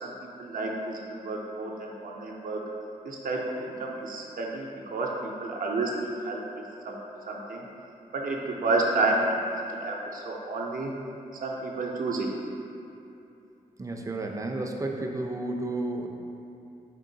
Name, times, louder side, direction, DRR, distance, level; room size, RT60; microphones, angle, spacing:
voice 1, 0.0-2.6 3.0-6.4 6.8-7.0 7.3-7.6 8.1-10.9 11.4-12.3, right 2 dB, 65° right, -1 dB, 0.6 m, -30 dB
voice 2, 13.8-16.1, right 2 dB, 20° right, 2 dB, 0.4 m, -32 dB
3.7 x 3.6 x 2.7 m, 2.7 s
cardioid pair, 60°, 15 cm